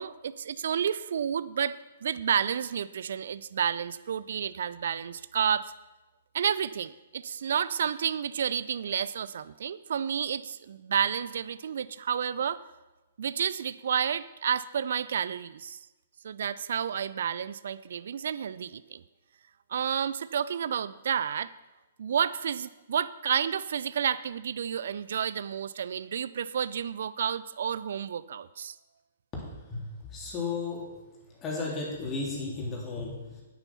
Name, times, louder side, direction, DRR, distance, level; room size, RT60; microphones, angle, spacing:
voice 1, 0.0-5.7 6.3-12.6 13.2-15.8 16.2-19.0 19.7-21.5 22.0-28.7, right 8 dB, 60° right, 17 dB, 0.4 m, -30 dB
voice 2, 29.7-30.9 31.3-33.2, left 3 dB, 20° left, -3 dB, 3.5 m, -34 dB
9.6 x 9.0 x 5.6 m, 1.1 s
figure-of-eight pair, 120°, 0 cm